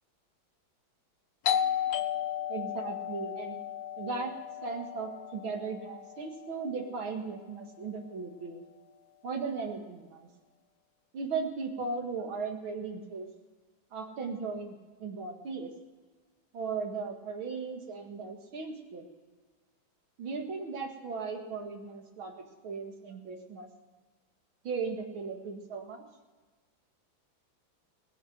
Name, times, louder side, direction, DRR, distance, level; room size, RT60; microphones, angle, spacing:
Doorbell, 1.5-6.8, left 9 dB, 65° left, 1.2 m, -34 dB
voice 1, 2.5-3.6 4.0-4.3 4.6-8.6 9.2-10.3 11.1-13.3 13.9-15.7 16.5-19.1 20.2-23.7 24.6-26.0, right 4 dB, 90° right, 3 dB, 2.7 m, -37 dB
18.5 x 9.4 x 6.3 m, 1.3 s
omnidirectional pair, 2.2 m